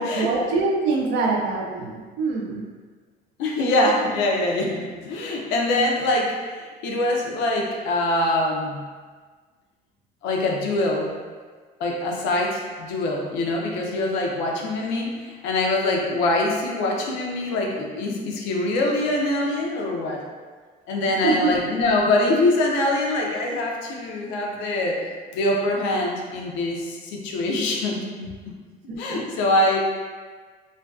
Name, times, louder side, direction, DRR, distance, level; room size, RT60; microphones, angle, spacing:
voice 1, 0.0-2.6 21.2-21.5 28.9-29.2, right 3 dB, 75° right, 0 dB, 0.5 m, -24 dB
voice 2, 3.4-8.8 10.2-11.1 11.8-20.2 20.9-28.3 29.0-29.8, left 2 dB, 90° left, -1 dB, 0.5 m, -24 dB
2.4 x 2.2 x 2.3 m, 1.5 s
cardioid pair, 115°, 18 cm